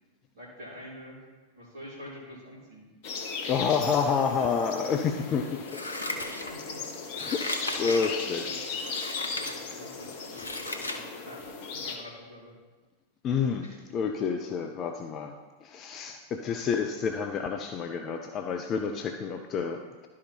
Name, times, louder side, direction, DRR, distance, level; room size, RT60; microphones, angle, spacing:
voice 1, 0.3-1.2 1.5-2.9 5.9-6.8 8.4-8.6 9.3-12.5 13.6-13.8, left 1 dB, 55° right, -5 dB, 3.0 m, -47 dB
sound 1, 3.0-12.0, left 4 dB, 50° left, 1.0 m, -37 dB
voice 2, 3.4-5.6 7.2-8.4 13.2-13.7 13.9-15.3 15.6-20.1, left 6 dB, 30° left, 5 dB, 0.5 m, -29 dB
sound 2, 3.8-5.5, right 2 dB, 35° right, 2.8 m, -53 dB
Scissors, 5.7-6.8 7.1-8.2 8.7-9.6 10.0-11.0 11.4-11.5, left 2 dB, 75° left, 0.8 m, -36 dB
11.5 x 4.9 x 4.4 m, 1.3 s
figure-of-eight pair, 90°, 0 cm